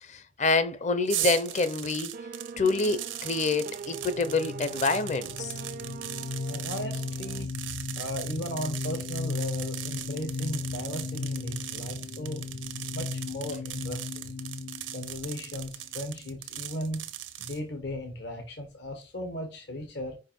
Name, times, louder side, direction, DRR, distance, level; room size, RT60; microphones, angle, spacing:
voice 1, 0.0-2.1 2.6-5.5, left 3 dB, 40° left, 0.7 m, -27 dB
sound 1, 1.1-17.6, right 13 dB, 90° right, 0.8 m, -39 dB
sound 2, 2.1-7.5, right 4 dB, 50° right, 0.3 m, -43 dB
sound 3, 3.8-16.3, left 4 dB, 80° left, 0.5 m, -36 dB
voice 2, 6.5-7.6 7.9-12.4 12.9-14.3 14.9-17.0 17.4-20.2, equal, 65° left, 1.1 m, -36 dB
5.0 x 4.8 x 4.4 m
head